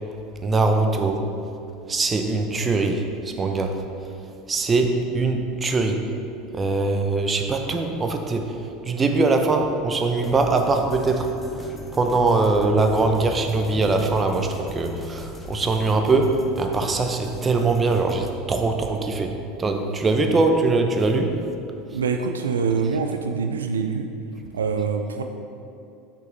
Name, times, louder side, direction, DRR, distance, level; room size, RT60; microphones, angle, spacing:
voice 1, 0.4-1.2 1.9-3.8 4.5-6.1 6.5-11.3 11.9-21.4, right 3 dB, 25° right, 4 dB, 0.7 m, -22 dB
sound 1, 10.2-18.3, left 2 dB, 15° left, 0.8 m, -38 dB
voice 2, 21.9-24.1 24.5-25.2, right 5 dB, 85° right, 6 dB, 0.3 m, -25 dB
6.0 x 5.7 x 3.9 m, 2.7 s
hypercardioid pair, 80°, 0 cm